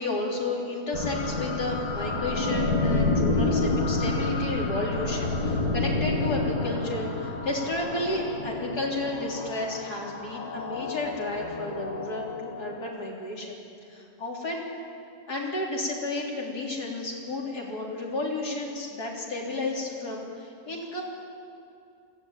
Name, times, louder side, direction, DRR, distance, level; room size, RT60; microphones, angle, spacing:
voice 1, 0.0-13.6 13.9-14.6 15.3-21.0, left 2 dB, 85° left, -2 dB, 4.1 m, -32 dB
sound 1, 0.9-12.9, left 3 dB, 70° left, 2.9 m, -29 dB
22.0 x 16.0 x 8.9 m, 2.5 s
omnidirectional pair, 1.6 m